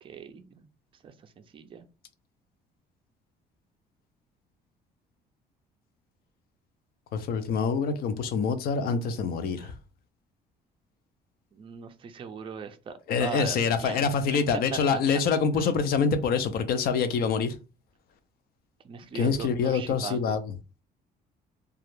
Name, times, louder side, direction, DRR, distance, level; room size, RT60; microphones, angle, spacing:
voice 1, 0.0-0.7 1.0-1.9 8.8-9.2 9.6-9.7 11.5-15.0 15.6-15.7 18.8-20.4, right 6 dB, 30° right, 0.4 m, -40 dB
voice 2, 7.1-9.7 13.1-17.5 19.1-20.5, left 5 dB, 65° left, 0.5 m, -26 dB
2.3 x 2.0 x 3.0 m
cardioid pair, 110°, 17 cm